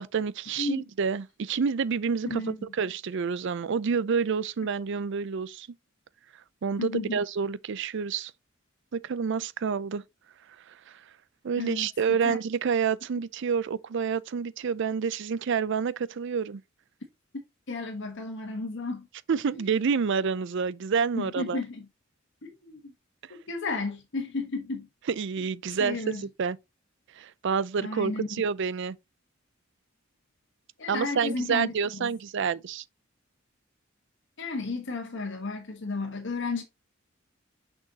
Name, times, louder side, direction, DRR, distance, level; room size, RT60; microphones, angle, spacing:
voice 1, 0.0-5.7 6.6-8.3 8.9-10.0 10.7-11.0 11.4-16.6 19.3-21.6 25.1-26.6 27.1-29.0 30.9-32.8, right 6 dB, 65° right, 0.5 m, -28 dB
voice 2, 2.3-2.7 6.8-7.2 11.6-12.4 17.7-19.1 19.5-19.6 21.2-21.9 22.4-22.9 23.3-24.9 25.8-26.2 27.8-28.3 30.8-32.1 34.4-36.6, left 3 dB, 65° left, 1.3 m, -33 dB
6.4 x 6.2 x 2.8 m
head